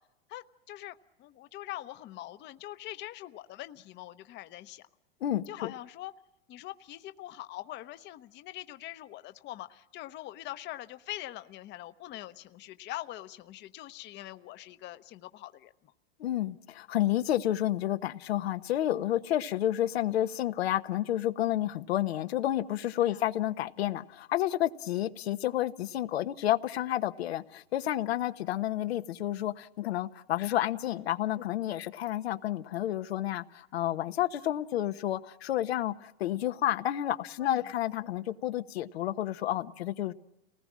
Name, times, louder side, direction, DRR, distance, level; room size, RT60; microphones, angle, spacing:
voice 1, 0.3-4.8 5.5-6.1 6.5-15.7 23.0-23.2 37.4-37.7, left 15 dB, 35° left, 1.0 m, -43 dB
voice 2, 5.2-5.7 16.2-40.1, left 13 dB, 85° left, 1.2 m, -30 dB
29.5 x 19.5 x 7.4 m
supercardioid pair, 125°, 31 cm